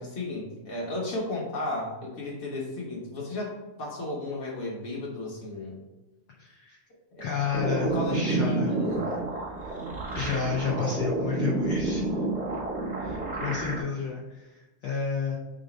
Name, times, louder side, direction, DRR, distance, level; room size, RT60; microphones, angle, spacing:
voice 1, 0.0-5.8 7.1-7.3 7.8-9.0, left 2 dB, 55° left, -3 dB, 1.9 m, -34 dB
voice 2, 6.4-6.8 7.2-8.7 10.1-12.1 13.0-15.4, left 6 dB, 75° left, -2 dB, 1.2 m, -31 dB
sound 1, 7.5-13.8, right 2 dB, 45° right, 0.5 m, -29 dB
4.9 x 3.9 x 5.2 m, 1.1 s
omnidirectional pair, 3.4 m